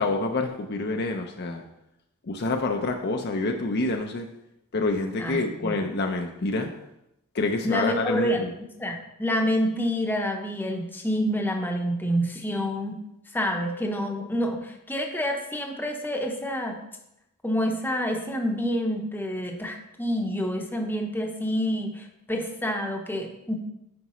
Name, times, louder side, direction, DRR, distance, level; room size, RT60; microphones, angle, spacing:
voice 1, 0.0-1.6 2.2-4.3 4.7-6.7 7.3-8.5, left 3 dB, 50° left, 4 dB, 0.6 m, -27 dB
voice 2, 5.2-5.8 7.6-8.4 8.8-13.0 13.3-16.8 17.4-23.5, equal, 10° left, 2 dB, 0.8 m, -28 dB
9.5 x 5.1 x 3.0 m, 0.85 s
head